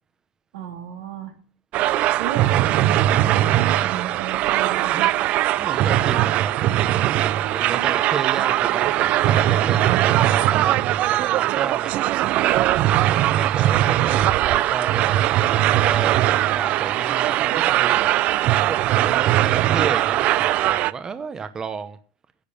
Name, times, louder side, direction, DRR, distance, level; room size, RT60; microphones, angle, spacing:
voice 1, 0.5-1.3 2.2-5.1 7.6-8.1 15.5-15.9, right 10 dB, 80° right, 4 dB, 3.3 m, -34 dB
sound 1, 1.7-20.9, right 14 dB, 50° right, 0.5 m, -20 dB
voice 2, 5.6-12.0 13.1-15.2 15.5-18.1 18.7-22.0, right 5 dB, 25° right, 10 dB, 0.9 m, -32 dB
10.5 x 6.9 x 8.5 m, 0.43 s
supercardioid pair, 120°, 3 cm